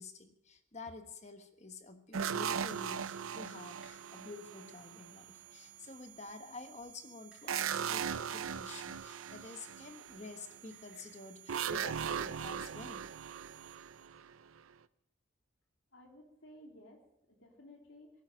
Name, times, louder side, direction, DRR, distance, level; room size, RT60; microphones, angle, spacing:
voice 1, 0.0-13.0, left 3 dB, 35° left, 7 dB, 1.3 m, -49 dB
sound 1, 2.1-5.1 7.5-10.2 11.5-14.6, right 7 dB, 90° right, 0.6 m, -38 dB
sound 2, 2.3-12.4, right 1 dB, 5° right, 7.0 m, -71 dB
sound 3, 2.7-14.1, right 15 dB, 70° right, 3.2 m, -57 dB
voice 2, 15.9-18.2, left 1 dB, 80° left, 0 dB, 3.4 m, -56 dB
18.0 x 11.5 x 6.3 m, 0.78 s
head